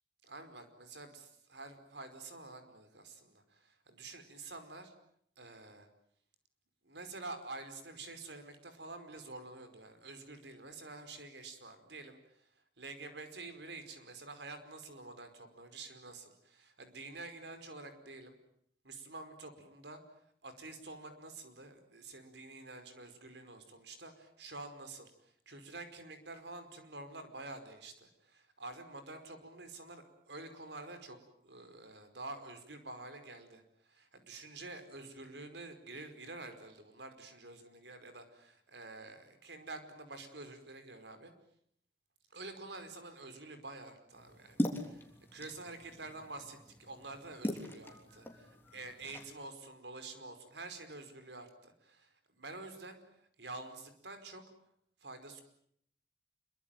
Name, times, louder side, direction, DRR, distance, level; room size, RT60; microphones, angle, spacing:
voice 1, 0.2-4.9 5.4-5.9 6.8-12.5 12.8-18.4 18.8-20.0 20.4-25.1 25.5-31.2 31.4-41.3 42.3-45.1 45.3-53.0 53.4-54.4 55.0-55.4, right 2 dB, 80° right, 9 dB, 5.1 m, -48 dB
sound 1, 44.1-49.2, equal, 10° left, 3.5 m, -41 dB
27.0 x 24.0 x 9.2 m, 0.69 s
head